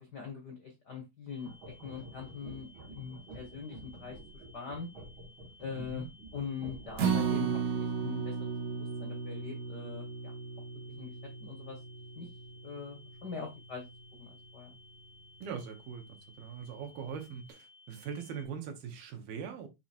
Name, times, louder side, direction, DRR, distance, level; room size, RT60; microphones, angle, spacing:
voice 1, 0.0-1.5 1.8-4.9 5.6-6.1 6.3-10.3 11.0-11.1 11.4-11.8 12.2-12.3 12.6-13.9 14.2-14.7, left 6 dB, 90° left, 0.9 m, -43 dB
sound 1, 1.3-18.4, left 3 dB, ahead, 2.0 m, -59 dB
sound 2, 1.4-7.6, right 2 dB, 50° right, 1.7 m, -49 dB
voice 2, 5.7-6.1 15.4-19.7, right 7 dB, 90° right, 3.2 m, -41 dB
Acoustic guitar, 7.0-13.3 13.7-13.8 14.2-14.3, right 6 dB, 70° right, 2.9 m, -35 dB
7.9 x 3.0 x 4.4 m
omnidirectional pair, 4.1 m